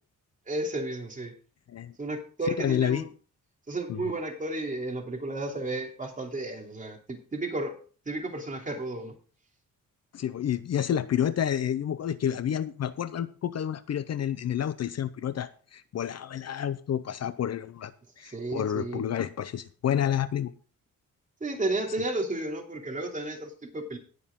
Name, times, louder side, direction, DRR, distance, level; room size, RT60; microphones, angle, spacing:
voice 1, 0.5-1.3 2.0-3.1 3.7-7.8 8.0-9.1 18.2-19.0 21.4-24.0, right 2 dB, 25° right, 1 dB, 2.9 m, -33 dB
voice 2, 2.6-3.0 3.9-4.0 10.1-17.9 18.2-20.5, left 9 dB, 50° left, 14 dB, 0.6 m, -29 dB
19.0 x 6.5 x 3.7 m, 0.39 s
wide cardioid pair, 135°, 32 cm